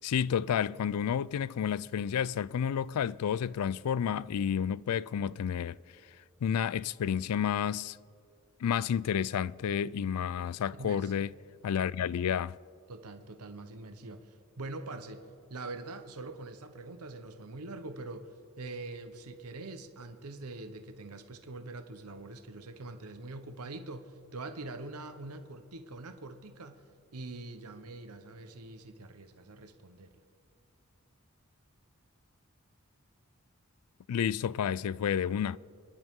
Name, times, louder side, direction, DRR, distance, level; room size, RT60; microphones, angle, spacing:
voice 1, 0.0-5.8 6.4-8.0 8.6-11.3 11.6-12.6 34.1-35.6, left 8 dB, 90° left, 0.3 m, -30 dB
voice 2, 10.7-11.1 12.9-26.8 27.1-30.2, right 2 dB, 90° right, 1.0 m, -44 dB
29.5 x 11.0 x 3.7 m
head